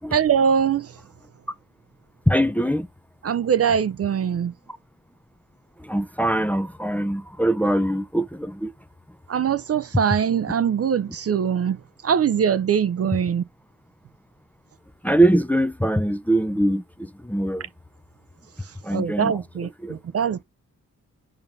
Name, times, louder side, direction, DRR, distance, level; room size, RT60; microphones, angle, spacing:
voice 1, 0.1-0.9 3.2-4.5 9.3-13.4 18.9-20.4, right 7 dB, 50° right, 0.5 m, -22 dB
voice 2, 2.3-2.9 5.9-8.7 15.0-17.6 18.8-19.4 19.8-20.0, right 1 dB, 5° left, 0.5 m, -22 dB
8.9 x 5.3 x 2.6 m
cardioid pair, 90°, 31 cm